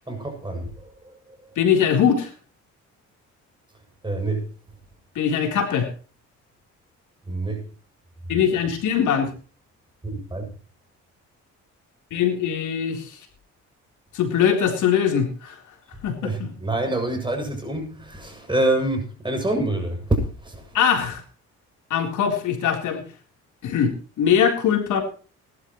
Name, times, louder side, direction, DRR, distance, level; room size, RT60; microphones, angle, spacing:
voice 1, 0.1-1.2 4.0-4.5 7.3-7.6 10.1-10.5 16.2-20.8, right 1 dB, 15° right, 7.4 m, -26 dB
voice 2, 1.6-2.3 5.2-5.9 8.3-9.3 12.1-13.1 14.1-15.6 16.0-16.5 20.7-21.2 21.9-23.0 23.6-25.0, left 8 dB, 75° left, 3.7 m, -21 dB
20.5 x 12.0 x 3.1 m
cardioid pair, 90°, 30 cm